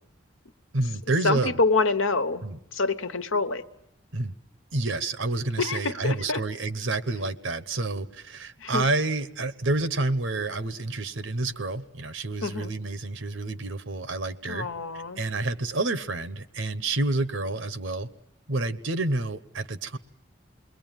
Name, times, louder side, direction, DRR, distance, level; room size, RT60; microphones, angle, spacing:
voice 1, 0.7-1.5 2.4-2.6 4.1-4.3 4.7-14.7 14.9-18.1 18.5-20.0, right 2 dB, 75° right, 1.1 m, -29 dB
voice 2, 1.2-3.6 5.6-6.4 8.6-8.9 12.4-12.7 14.4-15.2, left 3 dB, 80° left, 1.3 m, -26 dB
28.5 x 21.5 x 9.2 m
head